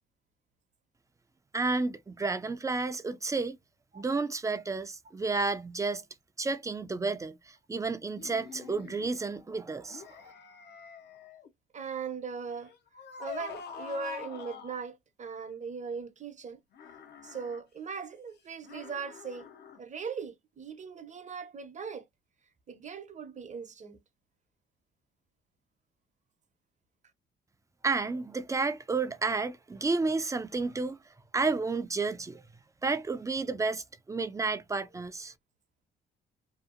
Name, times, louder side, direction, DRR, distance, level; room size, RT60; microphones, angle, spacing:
voice 1, 1.5-3.6 3.9-6.0 6.4-10.2 27.8-31.0 31.3-32.4 32.8-35.3, right 3 dB, 15° right, 0.5 m, -31 dB
sound 1, 8.2-9.1 9.9-11.5 12.5-14.8 16.7-17.6 18.6-19.8, left 7 dB, 55° left, 0.7 m, -46 dB
voice 2, 11.7-12.7 13.2-16.6 17.2-19.5 19.8-22.0 22.7-24.0, right 5 dB, 35° right, 0.8 m, -39 dB
2.8 x 2.4 x 2.5 m
cardioid pair, 90°, 20 cm